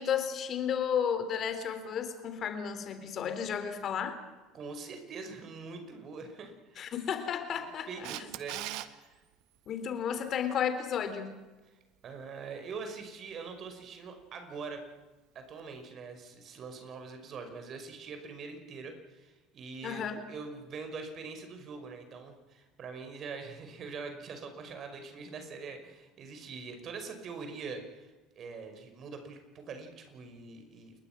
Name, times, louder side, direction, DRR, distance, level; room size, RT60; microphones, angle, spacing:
voice 1, 0.0-4.2 6.8-7.9 9.7-11.4 19.8-20.2, left 8 dB, 45° left, 9 dB, 3.5 m, -33 dB
voice 2, 4.5-6.9 7.9-9.2 11.7-11.8 12.0-14.8 15.3-30.9, right 4 dB, 45° right, 6 dB, 5.6 m, -43 dB
Camera, 8.0-8.9 15.6-15.7, right 16 dB, 65° right, 1.4 m, -38 dB
29.0 x 22.0 x 6.1 m, 1.2 s
hypercardioid pair, 70°, 0 cm